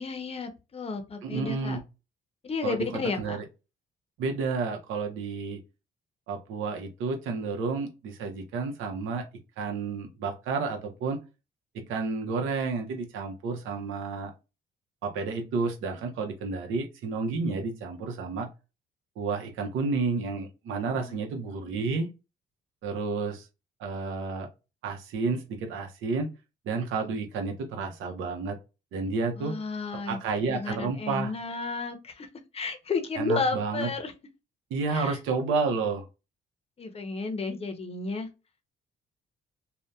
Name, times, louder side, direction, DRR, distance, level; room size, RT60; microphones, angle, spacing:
voice 1, 0.0-1.8 2.4-3.4 21.0-21.2 29.4-30.2 30.5-32.3 32.5-34.1 34.9-35.2 36.8-38.3, left 4 dB, 30° left, 0.6 m, -32 dB
voice 2, 1.2-1.8 2.6-2.9 3.2-3.4 4.2-5.6 6.3-9.3 9.6-11.2 11.9-14.3 15.0-18.5 19.2-22.1 22.8-23.5 23.8-24.5 24.8-26.3 26.7-28.6 28.9-29.5 29.9-31.3 33.2-33.9 34.7-36.0, right 4 dB, 85° right, 0.7 m, -31 dB
2.7 x 2.1 x 2.2 m
cardioid pair, 90°, 20 cm